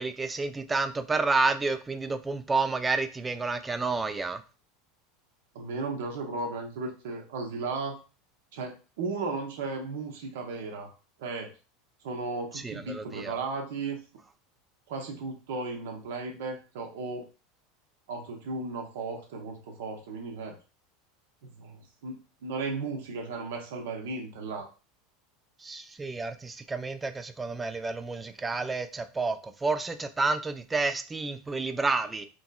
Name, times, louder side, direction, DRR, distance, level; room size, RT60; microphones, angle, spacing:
voice 1, 0.0-4.4 12.6-13.4 25.6-32.2, right 3 dB, 15° right, 9 dB, 0.4 m, -30 dB
voice 2, 5.5-8.0 8.5-10.9 11.2-11.5 12.0-14.0 14.9-17.2 18.1-20.6 21.6-24.7, right 3 dB, 65° right, 1 dB, 0.6 m, -35 dB
3.0 x 2.6 x 2.3 m, 0.33 s
figure-of-eight pair, 80°, 0 cm